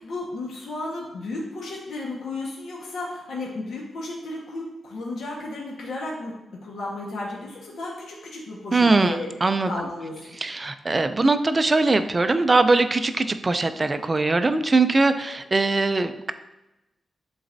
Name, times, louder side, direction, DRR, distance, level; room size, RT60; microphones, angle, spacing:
voice 1, 0.0-9.3 9.6-10.4 15.1-15.3, left 2 dB, 75° left, -3 dB, 1.3 m, -34 dB
voice 2, 8.7-9.1 9.4-9.7 10.4-16.3, right 3 dB, 20° right, 10 dB, 0.4 m, -21 dB
11.0 x 4.0 x 2.6 m, 0.98 s
wide cardioid pair, 165°, 0 cm